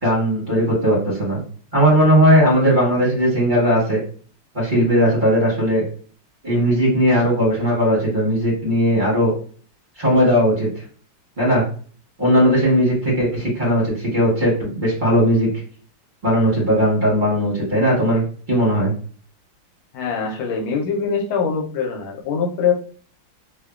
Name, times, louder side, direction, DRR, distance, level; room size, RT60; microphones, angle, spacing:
voice 1, 0.0-1.4 1.7-4.0 4.5-5.8 6.4-9.3 10.0-10.8 11.4-11.6 12.2-15.5 16.2-18.9, equal, 40° right, -5 dB, 0.7 m, -18 dB
voice 2, 19.9-22.7, left 6 dB, 85° left, 1 dB, 1.4 m, -23 dB
3.3 x 2.1 x 2.3 m, 0.44 s
omnidirectional pair, 2.2 m